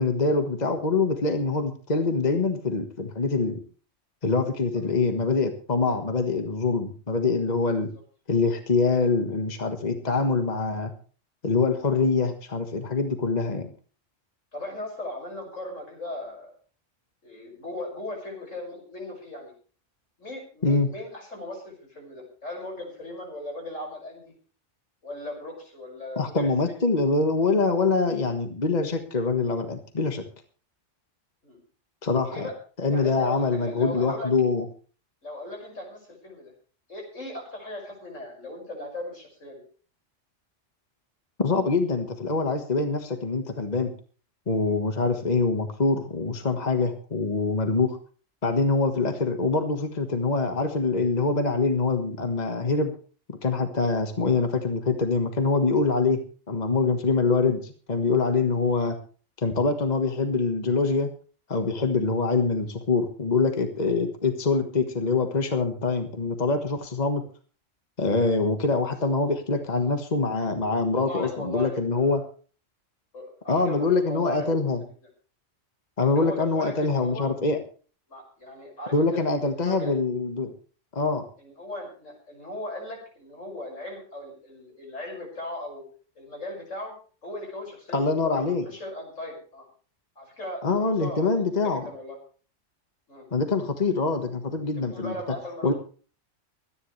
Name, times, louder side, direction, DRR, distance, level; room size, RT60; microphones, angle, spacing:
voice 1, 0.0-3.6 4.2-7.9 8.3-10.9 11.4-13.7 20.6-20.9 26.1-30.2 32.0-32.4 32.8-34.6 41.4-43.9 44.5-48.0 48.4-52.9 53.3-56.2 56.5-58.9 59.4-61.1 61.5-67.2 68.0-72.2 73.5-74.8 76.0-77.6 78.9-80.5 80.9-81.3 87.9-88.6 90.6-91.8 93.3-95.1 95.6-95.7, left 3 dB, 35° left, 6 dB, 1.6 m, -24 dB
voice 2, 14.5-16.6 17.2-19.5 20.2-24.3 25.0-26.5 31.4-31.6 32.3-32.6 32.9-34.3 35.2-36.5 36.9-39.6 69.6-69.9 70.9-72.2 73.1-74.7 76.0-77.3 78.1-79.4 79.6-80.0 81.4-85.8 86.2-86.9 87.2-89.7 90.2-91.3 91.6-92.2 93.1-93.3 94.9-95.7, left 1 dB, 85° left, 0 dB, 6.5 m, -38 dB
24.0 x 10.0 x 3.3 m, 0.39 s
omnidirectional pair, 1.3 m